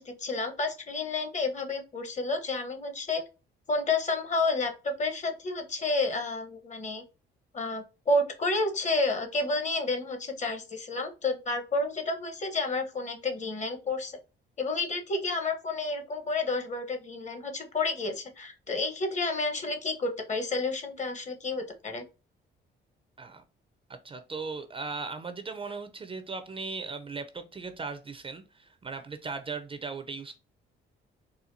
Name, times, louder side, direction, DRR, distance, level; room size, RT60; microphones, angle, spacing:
voice 1, 0.0-3.2 3.7-7.0 7.5-14.2 14.6-22.0, left 3 dB, 35° left, 0.9 m, -30 dB
voice 2, 23.9-30.4, right 4 dB, 25° right, 0.4 m, -38 dB
4.2 x 2.3 x 2.5 m
cardioid pair, 90°, 20 cm